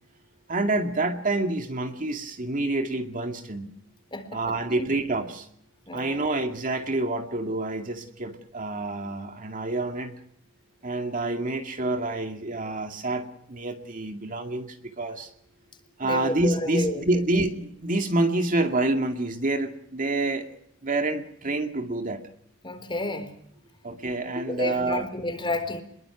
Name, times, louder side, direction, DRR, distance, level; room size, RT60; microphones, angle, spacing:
voice 1, 0.5-3.7 4.3-5.5 5.9-10.1 10.8-15.3 16.0-20.5 20.8-22.2 23.8-25.1, right 2 dB, 40° right, 5 dB, 2.3 m, -27 dB
voice 2, 4.1-4.8 5.9-6.4 16.0-17.0 22.6-23.3 24.5-25.8, left 2 dB, 25° left, 9 dB, 3.9 m, -31 dB
28.0 x 22.0 x 6.0 m, 0.69 s
head